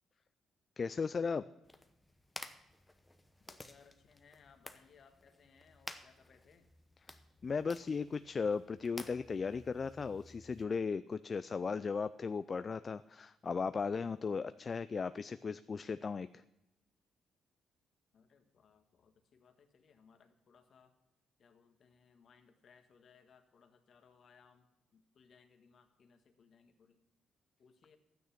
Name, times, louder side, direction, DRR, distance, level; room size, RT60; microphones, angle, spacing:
voice 1, 0.8-1.4 7.4-16.4, left 5 dB, 40° left, 13 dB, 0.3 m, -36 dB
sound 1, 1.6-10.6, left 1 dB, 10° left, 0.9 m, -53 dB
voice 2, 3.4-6.7 18.1-20.9 21.4-27.0 27.6-28.0, left 6 dB, 55° left, 6 dB, 1.5 m, -65 dB
12.0 x 9.4 x 5.8 m, 0.95 s
cardioid pair, 90°, 0 cm